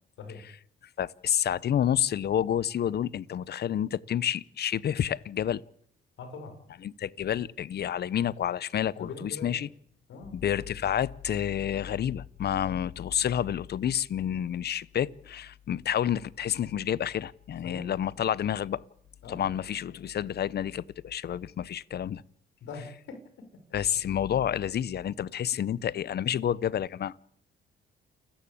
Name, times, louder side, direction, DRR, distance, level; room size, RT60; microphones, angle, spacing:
voice 1, 1.0-5.6 6.8-9.7 10.3-18.8 19.3-22.2 23.7-27.1, left 10 dB, 55° left, 0.8 m, -29 dB
voice 2, 6.2-6.5 9.0-9.5 10.1-10.4 12.6-12.8 17.6-17.9 19.2-19.5 22.6-23.2, left 4 dB, 75° left, 6.3 m, -42 dB
29.0 x 13.0 x 8.7 m
cardioid pair, 90°, 20 cm